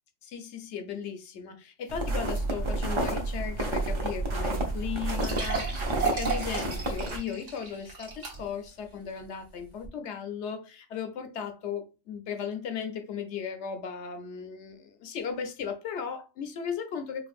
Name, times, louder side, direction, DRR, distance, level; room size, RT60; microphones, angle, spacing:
voice 1, 0.2-17.3, left 7 dB, 65° left, 0.9 m, -36 dB
sound 1, 1.9-7.2, right 2 dB, 30° right, 0.6 m, -30 dB
sound 2, 4.2-4.3 4.6-4.7 5.1-8.7 9.1-9.2 9.8-9.9, right 5 dB, 70° right, 1.6 m, -34 dB
5.1 x 2.5 x 2.4 m
omnidirectional pair, 1.3 m